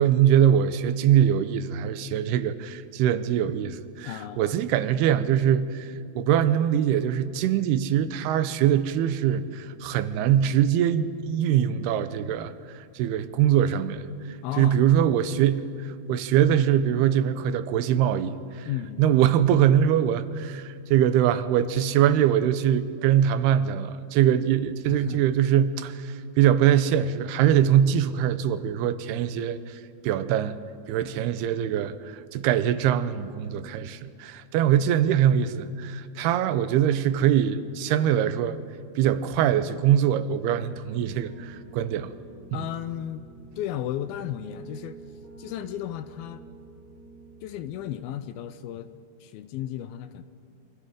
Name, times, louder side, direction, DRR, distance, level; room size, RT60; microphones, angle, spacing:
voice 1, 0.0-15.7 16.1-18.7 19.0-30.6 30.9-38.6 39.0-42.1 42.5-42.6, right 10 dB, 85° right, 12 dB, 2.8 m, -23 dB
voice 2, 4.0-4.6 14.4-15.5 18.7-19.2 24.9-25.3 34.8-34.9 42.5-43.2 43.6-45.0 45.4-46.4 47.4-48.9 49.2-50.2, left 11 dB, 80° left, 12 dB, 2.4 m, -34 dB
Piano, 41.0-47.8, right 3 dB, 45° right, 7.4 m, -47 dB
27.0 x 24.5 x 5.1 m, 2.3 s
omnidirectional pair, 4.6 m